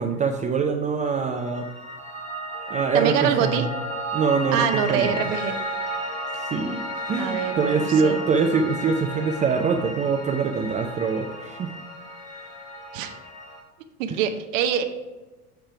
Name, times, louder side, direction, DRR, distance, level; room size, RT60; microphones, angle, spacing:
voice 1, 0.0-1.7 2.7-3.6 4.1-5.3 6.4-11.7 14.1-14.2, right 5 dB, 20° right, 4 dB, 0.4 m, -24 dB
Piano, 1.2-13.6, equal, 15° left, 1.7 m, -33 dB
voice 2, 2.9-3.6 4.5-5.6 7.2-8.2 12.9-13.1 14.0-14.8, right 8 dB, 60° right, 7 dB, 1.0 m, -25 dB
9.1 x 3.3 x 5.7 m, 1.2 s
hypercardioid pair, 85°, 44 cm